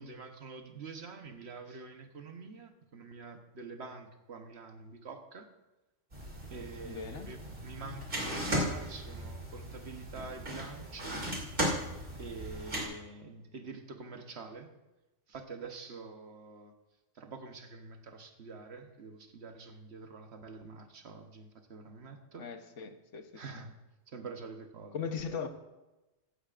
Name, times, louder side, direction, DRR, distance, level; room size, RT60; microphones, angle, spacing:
voice 1, 0.0-5.5 6.5-11.2 12.2-14.7 15.3-16.7 17.2-22.5 23.3-23.8 24.1-25.0, right 4 dB, 60° right, 6 dB, 1.3 m, -46 dB
sound 1, 6.1-12.8, right 1 dB, 45° right, 3.1 m, -37 dB
voice 2, 6.8-7.3 22.4-23.4 24.9-25.5, left 6 dB, 80° left, 7 dB, 1.3 m, -39 dB
15.5 x 14.5 x 2.5 m, 1.0 s
omnidirectional pair, 1.2 m